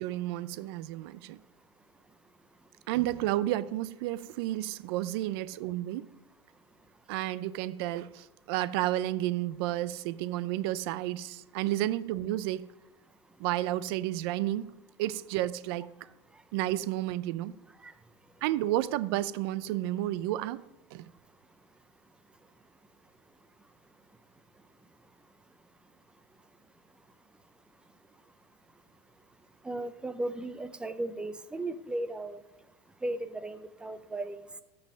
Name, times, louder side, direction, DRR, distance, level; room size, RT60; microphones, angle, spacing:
voice 1, 0.0-1.4 2.9-6.1 7.1-12.7 13.4-14.7 15.0-15.9 16.5-17.5 18.4-20.6 20.9-21.0, right 14 dB, 60° right, 0.5 m, -31 dB
voice 2, 29.6-32.4 33.0-34.4, right 2 dB, 5° right, 0.5 m, -36 dB
14.5 x 5.6 x 6.2 m
supercardioid pair, 155°, 15 cm